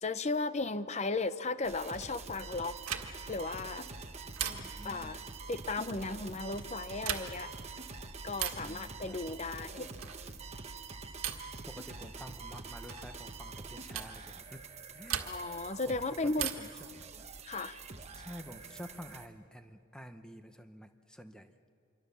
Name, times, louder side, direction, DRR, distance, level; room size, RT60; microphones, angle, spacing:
voice 1, 0.0-2.7 3.3-3.8 4.8-5.2 5.5-7.5 8.2-9.9 15.2-16.5 17.5-17.8, left 3 dB, 30° left, 13 dB, 0.7 m, -35 dB
sound 1, 1.6-19.3, right 4 dB, 30° right, 1.1 m, -46 dB
sound 2, 2.9-3.4 4.4-5.0 6.9-7.5 8.3-8.7 10.0-10.3 11.2-11.6 12.9-13.1 13.9-14.2 15.1-15.6 16.4-16.8 18.3-19.0, right 9 dB, 85° right, 1.6 m, -38 dB
voice 2, 4.4-5.2 8.6-9.2 11.7-14.6 14.9-15.2 15.9-16.0 16.4-16.7 18.1-21.5, equal, 5° left, 7 dB, 0.9 m, -49 dB
26.5 x 23.5 x 7.0 m, 2.3 s
head